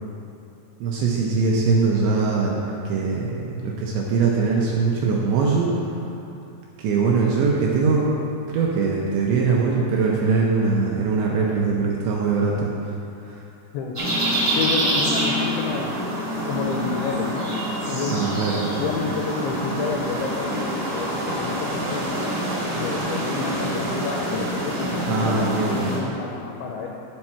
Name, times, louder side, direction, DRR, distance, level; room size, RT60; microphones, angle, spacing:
voice 1, 0.8-2.6 2.9-6.0 6.8-8.0 8.5-12.7 13.3-13.4 18.1-18.6 25.1-25.8, right 4 dB, 80° right, -3 dB, 2.6 m, -22 dB
sound 1, 13.9-26.0, right 1 dB, 55° right, 1.0 m, -26 dB
voice 2, 14.6-16.0 16.5-17.5 17.8-18.3 18.7-21.6 21.9-22.3 22.7-26.9, left 5 dB, 80° left, 0 dB, 2.7 m, -29 dB
11.5 x 4.4 x 5.9 m, 2.9 s
omnidirectional pair, 5.9 m